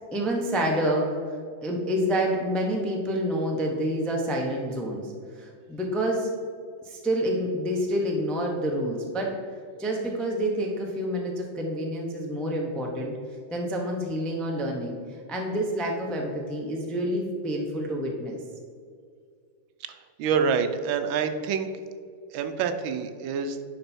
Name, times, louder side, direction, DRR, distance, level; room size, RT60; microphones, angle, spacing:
voice 1, 0.1-1.2 1.6-6.3 6.8-9.3 9.8-13.2 13.5-15.0 15.3-18.4, equal, ahead, -1 dB, 0.4 m, -28 dB
voice 2, 20.2-21.7 22.3-23.6, right 6 dB, 85° right, 8 dB, 1.4 m, -26 dB
10.5 x 4.1 x 4.4 m, 2.2 s
omnidirectional pair, 2.2 m